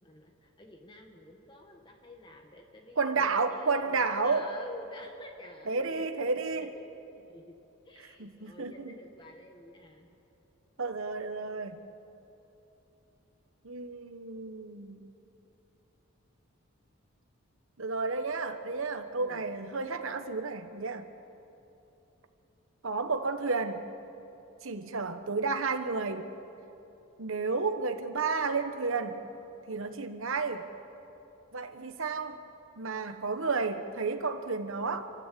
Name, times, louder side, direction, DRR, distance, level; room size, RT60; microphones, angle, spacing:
voice 1, 0.0-7.6 7.8-10.1 19.2-19.5, left 1 dB, 20° left, 2 dB, 1.5 m, -49 dB
voice 2, 3.0-4.5 5.7-6.7 8.2-8.9 10.8-11.8 13.6-15.1 17.8-21.1 22.8-23.9 24.6-26.3 27.2-29.2 29.7-30.7 31.5-32.4 32.8-35.1, right 4 dB, 70° right, 7 dB, 1.2 m, -31 dB
29.0 x 11.0 x 8.5 m, 3.0 s
head